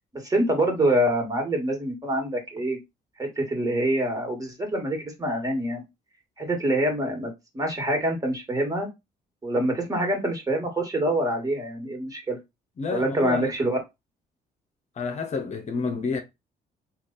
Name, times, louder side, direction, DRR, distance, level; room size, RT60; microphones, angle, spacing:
voice 1, 0.1-2.8 3.2-5.8 6.4-8.9 9.4-12.4 12.9-13.8, right 1 dB, 20° right, 1.7 m, -25 dB
voice 2, 12.8-13.5 15.0-16.2, left 4 dB, 45° left, 0.8 m, -29 dB
3.3 x 2.4 x 3.9 m
supercardioid pair, 75°, 17 cm